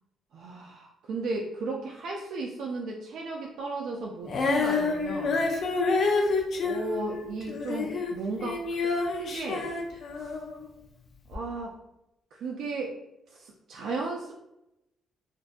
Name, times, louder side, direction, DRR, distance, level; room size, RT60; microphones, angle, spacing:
voice 1, 0.3-5.4 6.6-9.7 11.3-11.8 12.3-13.0 13.3-14.3, right 3 dB, 70° right, 0 dB, 0.3 m, -35 dB
Female singing, 4.3-10.6 11.3-11.4, left 4 dB, 60° left, 0.5 m, -28 dB
2.5 x 2.2 x 2.4 m, 0.86 s
cardioid pair, 90°, 0 cm